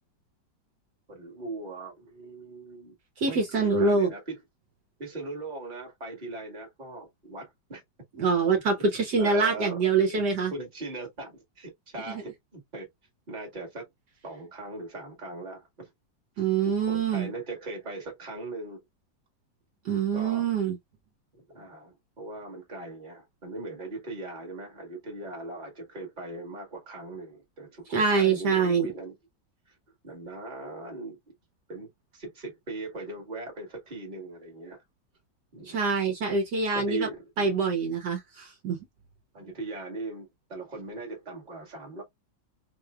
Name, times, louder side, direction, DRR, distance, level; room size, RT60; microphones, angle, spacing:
voice 1, 1.1-4.4 5.0-7.8 9.2-12.9 13.3-13.9 14.2-15.9 16.6-18.8 20.1-20.5 21.3-29.1 30.0-31.2 31.7-34.8 35.5-35.8 36.3-36.4 36.7-37.6 39.3-42.0, right 2 dB, 25° right, 1.7 m, -39 dB
voice 2, 3.2-4.1 8.2-10.5 16.4-17.3 19.8-20.8 27.9-28.9 35.7-37.1 37.4-38.8, right 4 dB, 65° right, 1.6 m, -25 dB
4.1 x 3.1 x 2.3 m
omnidirectional pair, 2.0 m